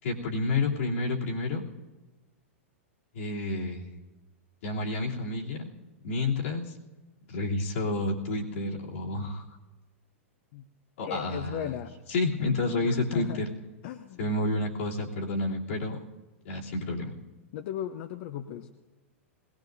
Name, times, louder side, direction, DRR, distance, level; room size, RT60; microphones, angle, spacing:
voice 1, 0.0-1.6 3.1-3.9 4.6-5.7 6.0-6.7 7.3-9.4 11.0-11.7 12.1-13.5 14.2-16.0 16.4-17.1, left 2 dB, 70° left, -5 dB, 3.1 m, -30 dB
voice 2, 11.0-12.0 12.8-13.4 13.8-14.3 17.5-18.7, left 10 dB, 55° left, 8 dB, 0.8 m, -37 dB
21.0 x 17.5 x 2.7 m, 1.2 s
hypercardioid pair, 115°, 7 cm